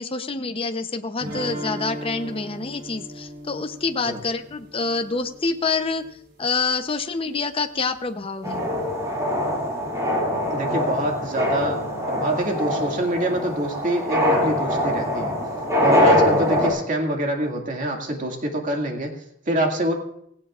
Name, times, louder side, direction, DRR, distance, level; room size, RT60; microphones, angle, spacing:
voice 1, 0.0-6.0 6.4-8.7, left 4 dB, 30° left, 7 dB, 0.7 m, -27 dB
sound 1, 1.2-6.1, equal, 60° right, 4.0 m, -37 dB
sound 2, 8.4-16.7, left 1 dB, 15° right, 5.7 m, -23 dB
voice 2, 10.5-15.4 15.8-19.9, right 1 dB, 45° right, 2 dB, 2.1 m, -26 dB
17.0 x 16.5 x 2.4 m, 0.72 s
head